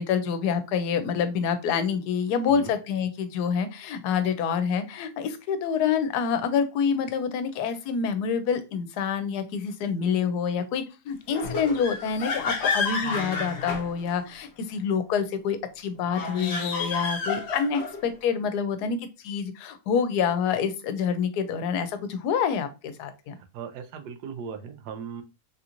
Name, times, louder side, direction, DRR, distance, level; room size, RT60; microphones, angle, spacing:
voice 1, 0.0-23.3, left 6 dB, 80° left, 9 dB, 1.1 m, -27 dB
sound 1, 11.3-14.4 16.0-18.0, left 4 dB, 55° left, 0.8 m, -30 dB
voice 2, 23.4-25.2, right 7 dB, 85° right, 7 dB, 1.2 m, -38 dB
3.7 x 2.5 x 2.8 m, 0.28 s
omnidirectional pair, 1.7 m